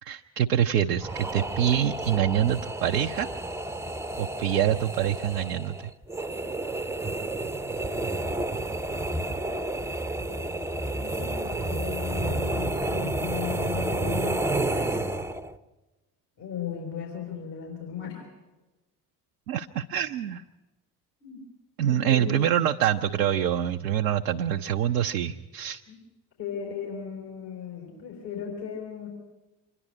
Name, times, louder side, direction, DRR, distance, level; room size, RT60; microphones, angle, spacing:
voice 1, 0.0-3.3 4.2-5.9 19.5-20.4 21.8-25.8, right 10 dB, 80° right, 5 dB, 0.6 m, -25 dB
sound 1, 1.0-15.6, right 2 dB, 5° right, 0.7 m, -30 dB
voice 2, 10.7-14.4 16.4-18.2 21.2-21.4 21.8-22.3 25.9-26.0 26.4-29.1, left 8 dB, 60° left, 0 dB, 4.7 m, -36 dB
26.0 x 11.0 x 10.0 m, 1.1 s
figure-of-eight pair, 45°, 47 cm